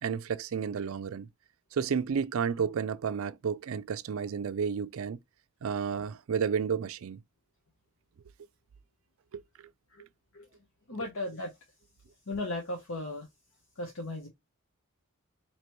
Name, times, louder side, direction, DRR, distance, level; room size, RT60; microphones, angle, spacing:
voice 1, 0.0-1.3 1.7-5.2 5.6-7.2 9.3-9.4, right 6 dB, 70° right, 0.4 m, -31 dB
voice 2, 10.9-11.5 12.3-13.3 13.8-14.3, left 2 dB, 65° left, 0.9 m, -36 dB
4.5 x 2.9 x 3.0 m
head